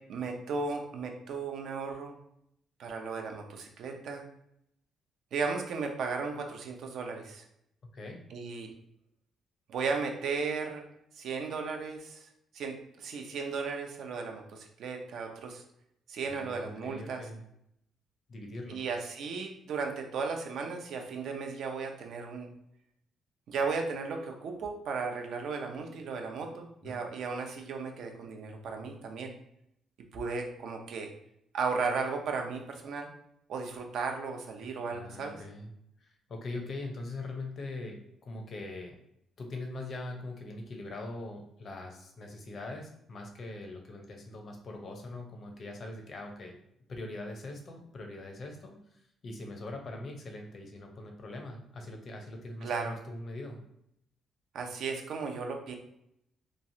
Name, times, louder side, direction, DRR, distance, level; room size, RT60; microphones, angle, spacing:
voice 1, 0.1-2.2 2.8-4.3 5.3-7.4 8.3-8.7 9.7-10.8 11.1-12.3 12.5-15.6 16.1-17.2 18.7-22.5 23.5-29.3 30.1-31.1 31.5-33.1 33.5-35.4 52.6-53.0 54.5-55.7, right 4 dB, 75° right, 3 dB, 0.5 m, -35 dB
voice 2, 16.3-17.4 18.3-18.8 26.8-27.0 34.9-35.7 36.0-39.0 39.4-46.6 46.9-48.8 49.2-53.6, left 2 dB, 50° left, 2 dB, 0.7 m, -42 dB
3.0 x 2.3 x 2.7 m, 0.76 s
cardioid pair, 90°, 0 cm